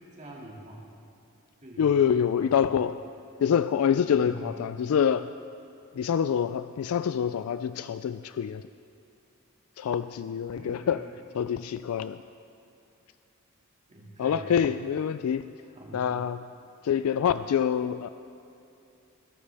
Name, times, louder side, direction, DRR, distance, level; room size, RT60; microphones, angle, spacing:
voice 1, 0.1-0.9 1.6-2.8 4.1-4.9 10.5-11.1 13.9-14.7 15.7-16.1, right 1 dB, 35° right, -3 dB, 2.2 m, -45 dB
voice 2, 1.8-3.0 3.4-5.3 6.0-8.6 9.8-11.0 11.3-12.2 14.2-15.5 15.9-16.4 16.8-18.1, left 8 dB, 85° left, 13 dB, 0.3 m, -26 dB
21.0 x 12.5 x 3.4 m, 2.6 s
head